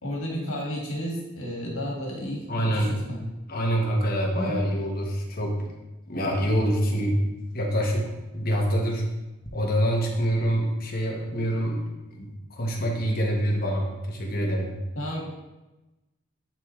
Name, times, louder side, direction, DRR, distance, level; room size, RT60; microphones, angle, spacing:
voice 1, 0.0-3.2 4.3-4.5 15.0-15.3, equal, 85° left, -2 dB, 1.9 m, -32 dB
voice 2, 2.5-3.0 3.5-5.6 6.1-7.2 7.5-8.1 8.3-9.1 9.5-11.8 12.1-12.3 12.6-14.7, equal, 45° left, 0 dB, 1.2 m, -25 dB
10.0 x 3.7 x 3.2 m, 1.0 s
head